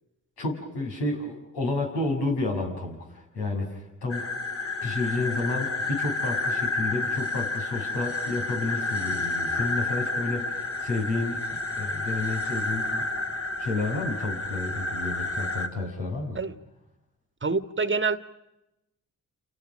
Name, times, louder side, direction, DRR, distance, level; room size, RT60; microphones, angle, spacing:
voice 1, 0.4-4.3 4.8-13.0 13.6-16.4, left 2 dB, 80° left, 0 dB, 6.8 m, -31 dB
sound 1, 4.1-15.7, left 2 dB, 35° left, 2.6 m, -30 dB
voice 2, 17.4-18.2, right 4 dB, 30° right, 12 dB, 1.5 m, -26 dB
29.5 x 29.0 x 6.4 m, 0.92 s
hypercardioid pair, 45°, 40 cm